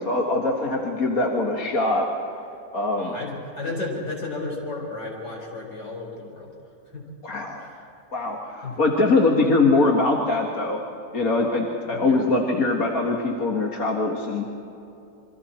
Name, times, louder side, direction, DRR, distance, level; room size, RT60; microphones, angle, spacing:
voice 1, 0.0-2.1 2.7-3.2 7.2-7.7 8.1-10.8 11.1-14.5, left 2 dB, 50° left, 0 dB, 2.1 m, -22 dB
voice 2, 3.0-6.5 6.9-7.1 7.5-7.8 8.6-8.8 11.9-12.2, left 3 dB, 70° left, -2 dB, 5.8 m, -33 dB
28.0 x 24.0 x 4.4 m, 2.7 s
omnidirectional pair, 2.0 m